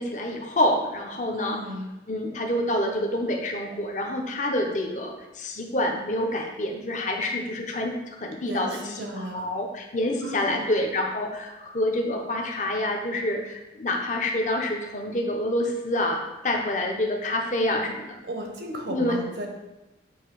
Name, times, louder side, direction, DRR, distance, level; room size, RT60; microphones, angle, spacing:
voice 1, 0.0-1.6 2.1-8.7 8.9-9.1 9.3-18.1 18.9-19.2, left 1 dB, 40° left, 2 dB, 0.8 m, -27 dB
voice 2, 1.3-1.9 8.4-9.5 10.2-10.7 18.2-19.5, equal, 80° right, 1 dB, 1.1 m, -35 dB
8.0 x 2.8 x 4.7 m, 1.0 s
head